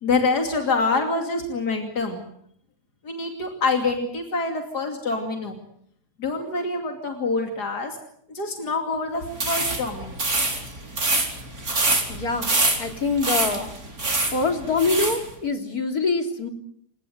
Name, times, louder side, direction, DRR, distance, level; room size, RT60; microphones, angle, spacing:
voice 1, 0.0-2.2 3.0-5.6 6.2-8.0 8.3-10.2, left 3 dB, 85° left, 3 dB, 3.3 m, -26 dB
sound 1, 9.3-15.2, right 2 dB, 65° right, 4.9 m, -25 dB
voice 2, 12.1-12.5 12.8-13.8 14.3-16.5, left 3 dB, 65° left, 4 dB, 3.7 m, -24 dB
28.5 x 17.5 x 8.0 m, 0.69 s
omnidirectional pair, 1.7 m